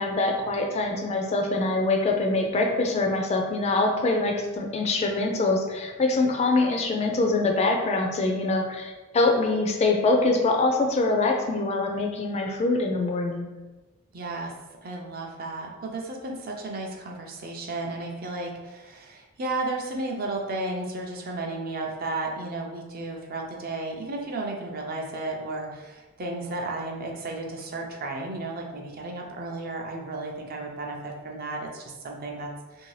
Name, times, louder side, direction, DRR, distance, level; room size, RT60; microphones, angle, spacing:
voice 1, 0.0-13.5, left 2 dB, 30° left, 2 dB, 0.3 m, -24 dB
voice 2, 14.1-14.5 14.8-32.9, right 2 dB, 45° right, 1 dB, 0.5 m, -33 dB
2.7 x 2.6 x 3.1 m, 1.2 s
head